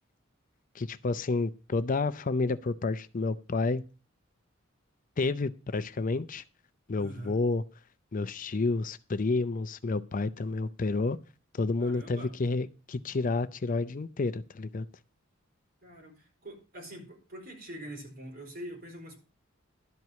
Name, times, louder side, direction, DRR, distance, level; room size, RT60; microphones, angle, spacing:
voice 1, 0.7-3.8 5.2-6.4 6.9-7.6 8.1-11.2 11.5-14.9, left 3 dB, 40° left, 0.5 m, -30 dB
voice 2, 7.0-7.4 11.8-12.3 15.8-19.2, right 1 dB, 50° right, 5.0 m, -44 dB
12.0 x 4.6 x 8.1 m
head